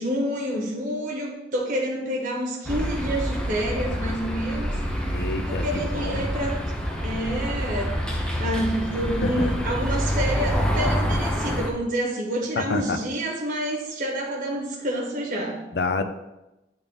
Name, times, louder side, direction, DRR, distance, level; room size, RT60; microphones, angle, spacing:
voice 1, 0.0-5.1 5.5-6.6 7.0-15.6, right 1 dB, 45° right, -2 dB, 1.1 m, -28 dB
sound 1, 2.6-11.7, equal, 5° left, 0.6 m, -27 dB
voice 2, 5.1-6.2 9.2-9.5 12.6-13.0 15.7-16.0, left 3 dB, 65° left, 9 dB, 0.5 m, -27 dB
8.6 x 3.5 x 4.0 m, 0.97 s
head